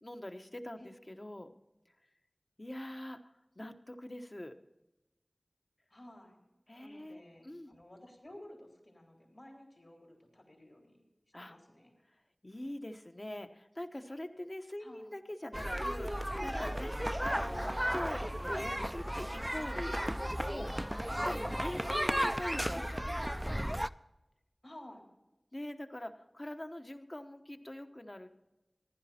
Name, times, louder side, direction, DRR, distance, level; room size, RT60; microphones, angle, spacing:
voice 1, 0.0-1.5 2.6-3.2 3.6-4.6 6.7-7.7 11.3-11.5 12.4-20.0 20.5-20.8 21.2-23.7 25.5-28.3, left 1 dB, 40° left, 6 dB, 1.1 m, -43 dB
voice 2, 5.9-6.4 6.8-11.0 11.4-11.9 14.8-15.1 24.6-25.0, left 1 dB, 60° left, 0 dB, 3.8 m, -54 dB
sound 1, 15.5-23.9, equal, 10° right, 0.4 m, -34 dB
15.0 x 11.5 x 4.3 m, 0.97 s
wide cardioid pair, 40°, 0 cm